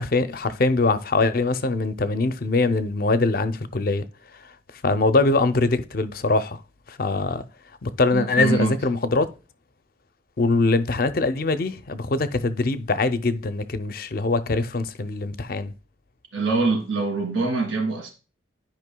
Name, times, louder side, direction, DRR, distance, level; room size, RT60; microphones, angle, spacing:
voice 1, 0.0-4.1 4.8-6.6 6.9-7.4 7.8-9.3 10.4-15.7, left 3 dB, 50° left, 0.5 m, -22 dB
voice 2, 8.1-8.8 16.3-18.1, right 4 dB, 90° right, 2.4 m, -24 dB
11.0 x 5.1 x 2.2 m
head